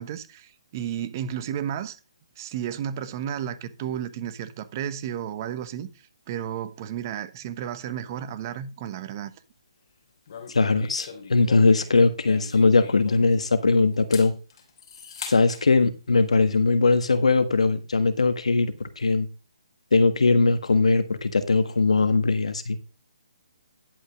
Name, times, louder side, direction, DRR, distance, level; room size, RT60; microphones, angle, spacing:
voice 1, 0.0-2.0 2.4-5.9 6.3-9.3, right 9 dB, 35° right, 1.1 m, -32 dB
sound 1, 10.3-13.5 13.9-15.6, left 6 dB, 50° left, 2.9 m, -41 dB
voice 2, 10.5-14.3 15.3-19.3 19.9-22.8, left 3 dB, 80° left, 1.5 m, -20 dB
11.0 x 5.4 x 5.1 m
hypercardioid pair, 150°, 3 cm